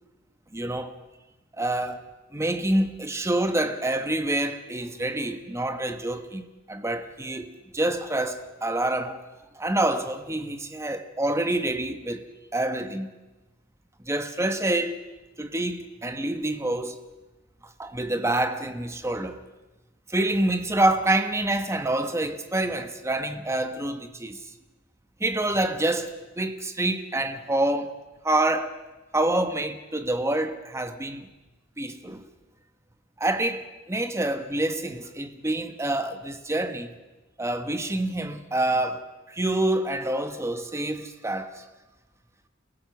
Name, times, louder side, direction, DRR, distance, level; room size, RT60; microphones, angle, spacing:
voice 1, 0.5-0.9 1.6-2.0 2.3-9.2 9.5-13.1 14.0-15.0 15.4-17.0 17.8-19.4 20.1-24.4 25.2-28.0 28.2-28.8 29.1-31.3 31.8-32.3 33.2-36.9 37.4-41.6, right 1 dB, 15° right, 1.3 m, -27 dB
29.5 x 16.0 x 6.1 m
head